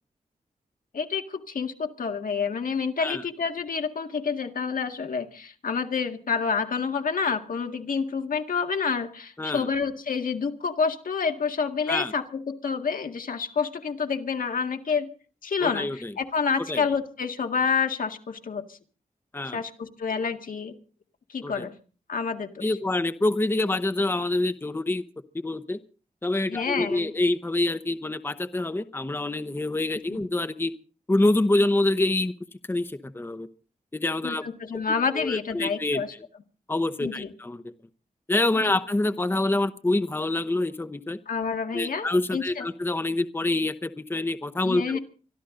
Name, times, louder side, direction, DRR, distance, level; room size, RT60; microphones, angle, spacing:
voice 1, 0.9-15.1 15.4-18.8 19.5-20.8 21.3-21.7 22.1-22.8 26.5-27.1 30.1-30.2 34.2-36.1 37.0-37.3 38.5-38.8 41.3-42.7 44.6-45.0, left 5 dB, 75° left, 6 dB, 1.9 m, -28 dB
voice 2, 15.6-16.1 16.7-16.8 19.3-19.6 21.4-21.7 22.6-25.0 25.4-25.8 26.2-30.7 31.1-32.3 32.7-33.5 33.9-34.5 35.2-36.0 36.7-37.7 38.3-41.2 41.7-45.0, left 2 dB, 15° left, 11 dB, 0.8 m, -26 dB
24.5 x 13.0 x 3.8 m, 0.38 s
wide cardioid pair, 125°, 14 cm